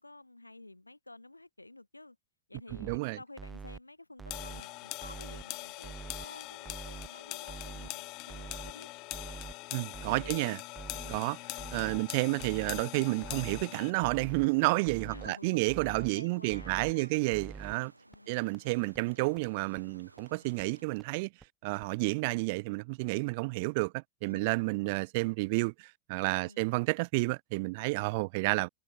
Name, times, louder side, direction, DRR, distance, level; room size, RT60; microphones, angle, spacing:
voice 1, 0.0-2.2 2.5-8.9 10.1-10.5 11.0-11.3 15.0-17.2 18.1-18.4 24.3-24.5 26.4-26.6, left 2 dB, 85° left, 2.5 m, -51 dB
sound 1, 2.6-3.0 3.4-3.8 4.2-4.6 5.0-5.4 5.8-6.2 6.6-7.1 7.5-7.9 8.3-8.7 9.1-9.5 9.9-10.4 10.8-11.2 11.6-12.0 12.4-12.8 13.2-13.6 14.0-14.5 14.9-15.3 15.7-16.1 16.5-16.9 17.3-17.7 18.1-18.2 18.5-18.6 18.9-19.0 19.4-19.5 19.8-19.9 20.2-20.3 20.6-20.7 21.0-21.1 21.4-21.5 21.8-21.9, right 5 dB, 15° right, 1.8 m, -45 dB
voice 2, 2.8-3.2 9.7-10.6 11.1-11.4 11.7-17.9 18.3-21.3 21.6-28.7, right 26 dB, 50° right, 0.4 m, -30 dB
sound 2, 4.3-13.9, left 24 dB, 40° left, 0.4 m, -42 dB
sound 3, 12.9-20.8, right 2 dB, 85° right, 1.4 m, -59 dB
figure-of-eight pair, 90°, 0 cm